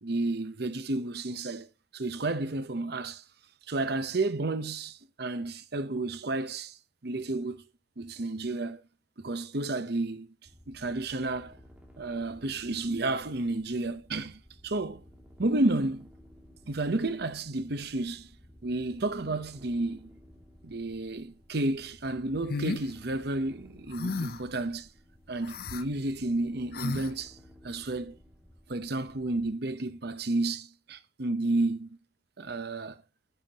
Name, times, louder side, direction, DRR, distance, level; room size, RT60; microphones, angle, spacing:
voice 1, 0.0-3.2 3.7-7.6 8.0-8.8 9.2-10.3 10.7-11.6 12.0-15.0 15.4-16.1 16.7-18.3 18.6-20.1 20.6-24.9 25.3-27.4 27.6-28.2 28.7-31.9 32.4-33.0, right 2 dB, 60° right, 0.9 m, -31 dB
sound 1, 10.5-29.5, equal, 10° right, 2.5 m, -55 dB
sound 2, 22.5-22.9 23.9-24.5 25.4-25.8 26.7-27.1, left 3 dB, 55° left, 0.5 m, -33 dB
10.0 x 7.2 x 3.0 m
head